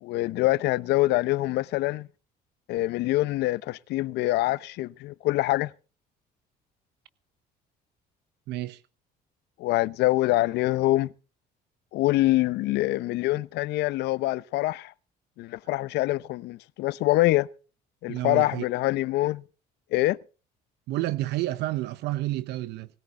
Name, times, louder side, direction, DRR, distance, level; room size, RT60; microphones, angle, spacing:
voice 1, 0.0-2.1 2.7-5.7 9.6-11.1 11.9-14.9 15.4-17.5 18.0-19.4 19.9-20.2, left 17 dB, 85° left, 0.8 m, -25 dB
voice 2, 8.5-8.8 18.1-18.6 20.9-22.9, right 16 dB, 85° right, 0.9 m, -30 dB
20.0 x 14.0 x 3.8 m
cardioid pair, 110°, 17 cm